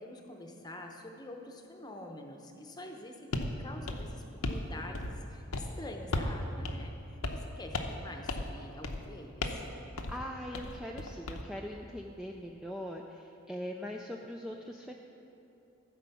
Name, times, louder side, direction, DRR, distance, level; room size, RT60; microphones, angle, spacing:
voice 1, 0.0-7.0 7.3-9.6, left 1 dB, 20° left, 3 dB, 0.8 m, -46 dB
sound 1, 3.3-3.5 3.9-4.7 4.9-5.3 5.5-5.7 6.1-6.4 6.6-6.8 7.2-7.5 7.7-8.0 8.3-8.5 8.8-9.1 9.4-9.7 10.0-10.2 10.5-11.4, left 2 dB, 90° left, 0.8 m, -35 dB
voice 2, 10.1-14.9, equal, 5° right, 0 dB, 0.3 m, -41 dB
14.0 x 5.0 x 6.9 m, 2.7 s
head